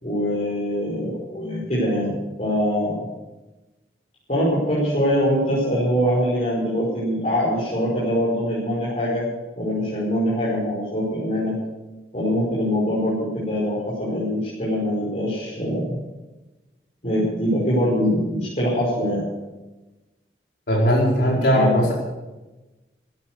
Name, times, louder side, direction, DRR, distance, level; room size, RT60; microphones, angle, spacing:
voice 1, 0.0-3.0 4.3-9.2 9.6-11.5 12.1-16.0 17.0-19.2 21.3-21.8, equal, 40° left, -7 dB, 5.6 m, -23 dB
voice 2, 20.7-21.9, equal, 75° left, -4 dB, 5.0 m, -18 dB
16.5 x 12.5 x 6.7 m, 1.1 s
head